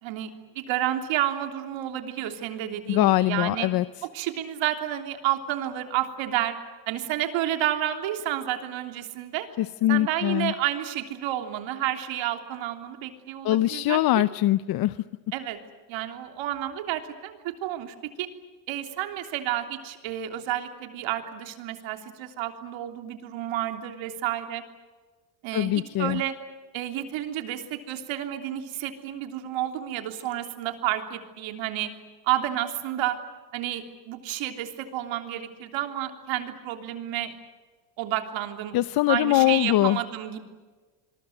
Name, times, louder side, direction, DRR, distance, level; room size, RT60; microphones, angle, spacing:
voice 1, 0.0-3.7 4.1-6.5 6.9-9.5 9.9-14.0 15.3-15.6 15.9-18.3 18.7-24.6 25.4-26.3 26.7-31.9 32.2-33.2 33.5-37.3 38.0-38.8 39.1-40.4, right 12 dB, 65° right, 6 dB, 3.4 m, -30 dB
voice 2, 2.9-3.9 9.6-10.5 13.4-15.0 25.5-26.2 38.7-40.0, left 15 dB, 50° left, 15 dB, 0.7 m, -22 dB
27.5 x 22.5 x 8.0 m, 1.4 s
cardioid pair, 130°, 49 cm